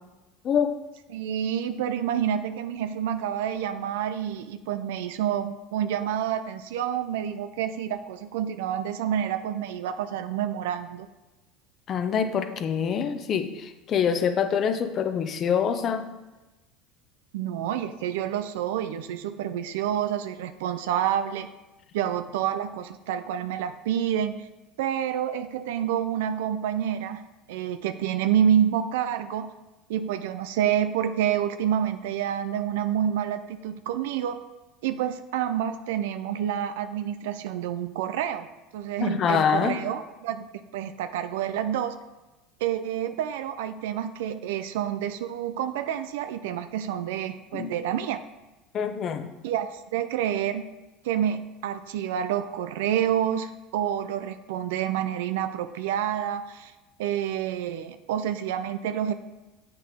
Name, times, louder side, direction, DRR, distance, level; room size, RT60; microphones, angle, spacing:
voice 1, 0.4-0.8 11.9-16.1 39.0-39.8 47.5-47.7 48.7-49.3, left 7 dB, 40° left, 9 dB, 0.8 m, -25 dB
voice 2, 1.1-11.1 17.3-21.5 21.9-24.5 24.8-29.5 29.9-34.4 34.8-38.5 38.7-40.5 40.7-41.9 42.6-48.2 49.4-50.7 51.0-56.7 57.0-59.1, right 10 dB, 85° right, 9 dB, 0.4 m, -28 dB
7.6 x 5.9 x 3.6 m, 1.1 s
supercardioid pair, 110°, 0 cm